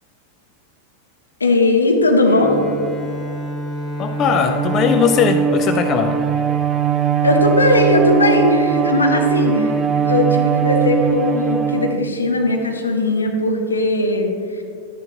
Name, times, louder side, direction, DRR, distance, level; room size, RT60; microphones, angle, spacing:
voice 1, 1.4-2.6 7.2-9.7 10.0-14.6, left 2 dB, 75° left, 2 dB, 1.2 m, -18 dB
Bowed string instrument, 2.3-7.1, equal, ahead, 1.3 m, -30 dB
voice 2, 4.0-6.2, left 7 dB, 35° left, 7 dB, 0.5 m, -18 dB
Bowed string instrument 2, 4.1-12.5, right 7 dB, 25° right, 0.4 m, -20 dB
11.5 x 10.5 x 2.9 m, 2.5 s
figure-of-eight pair, 90°, 0 cm